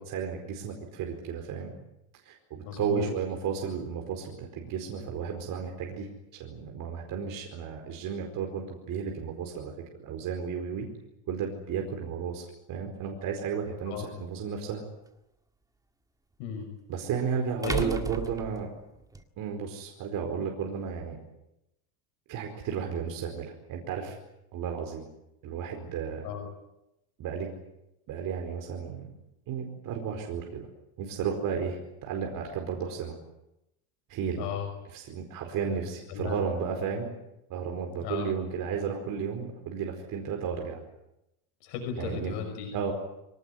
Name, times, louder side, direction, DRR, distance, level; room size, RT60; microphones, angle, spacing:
voice 1, 0.0-1.7 2.2-9.7 10.0-10.9 11.3-14.8 16.9-18.7 19.4-21.2 22.3-24.2 24.5-25.1 25.4-26.3 27.2-27.5 28.1-29.1 29.5-30.7 31.0-33.2 34.1-34.5 34.9-37.1 37.5-40.8 42.0-42.3 42.7-42.9, right 6 dB, 45° right, 2 dB, 4.8 m, -33 dB
voice 2, 2.7-3.1 13.9-14.1 16.4-16.7 17.6-17.9 26.2-26.5 34.4-34.7 35.7-36.4 38.0-38.3 41.6-42.7, left 8 dB, 65° left, 4 dB, 5.8 m, -35 dB
sound 1, 13.8-13.9 16.5-16.6 17.6-19.2, right 4 dB, 10° right, 1.8 m, -34 dB
24.5 x 18.5 x 9.9 m, 0.89 s
cardioid pair, 145°, 45 cm